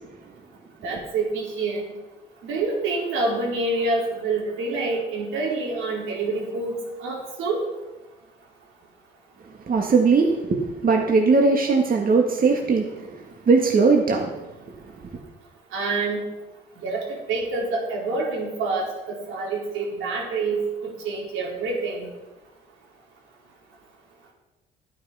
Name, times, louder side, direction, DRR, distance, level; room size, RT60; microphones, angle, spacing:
voice 1, 0.8-1.9 2.4-7.6 15.7-16.2 16.8-22.1, right 3 dB, 90° right, -3 dB, 4.4 m, -27 dB
voice 2, 9.7-14.3 15.0-15.2, right 4 dB, 45° right, 0 dB, 1.9 m, -20 dB
12.0 x 9.7 x 5.6 m, 1.1 s
cardioid pair, 90°, 20 cm